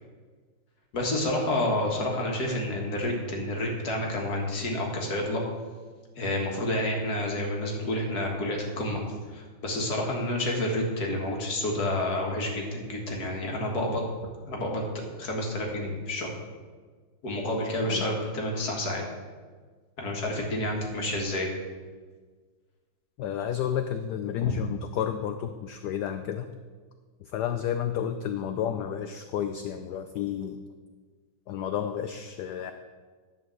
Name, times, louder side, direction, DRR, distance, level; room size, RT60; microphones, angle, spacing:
voice 1, 0.9-5.4 6.2-14.0 14.5-14.8 15.2-16.3 17.2-19.0 20.0-21.5 24.4-24.5, left 1 dB, 50° left, 0 dB, 2.2 m, -29 dB
voice 2, 23.2-26.6 27.2-30.6 31.5-32.7, left 9 dB, 75° left, 8 dB, 0.9 m, -31 dB
11.0 x 4.6 x 7.6 m, 1.5 s
omnidirectional pair, 2.2 m